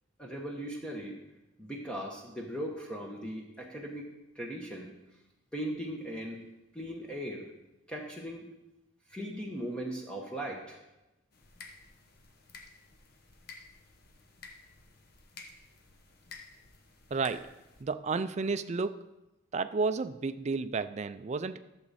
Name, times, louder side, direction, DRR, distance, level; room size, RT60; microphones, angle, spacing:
voice 1, 0.2-1.2 1.6-4.1 4.3-4.9 5.5-6.4 6.7-7.5 7.9-8.5 9.1-10.8, right 1 dB, 5° left, -1 dB, 1.0 m, -38 dB
sound 1, 11.3-17.8, left 4 dB, 50° left, 1.0 m, -52 dB
voice 2, 17.1-17.5 17.8-19.0 19.5-21.6, right 4 dB, 35° right, 12 dB, 0.4 m, -32 dB
11.5 x 7.2 x 4.1 m, 0.98 s
head